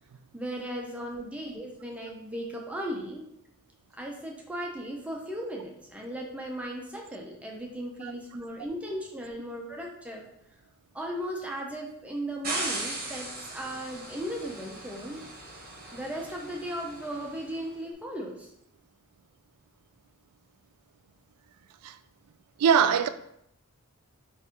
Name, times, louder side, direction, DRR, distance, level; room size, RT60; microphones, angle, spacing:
voice 1, 0.3-3.3 3.9-10.3 10.9-15.2 15.9-18.5, equal, 5° right, 0.5 m, -36 dB
sound 1, 12.4-17.6, right 2 dB, 40° right, 0.9 m, -38 dB
voice 2, 22.6-23.1, right 7 dB, 90° right, 0.3 m, -22 dB
4.1 x 2.5 x 3.6 m
head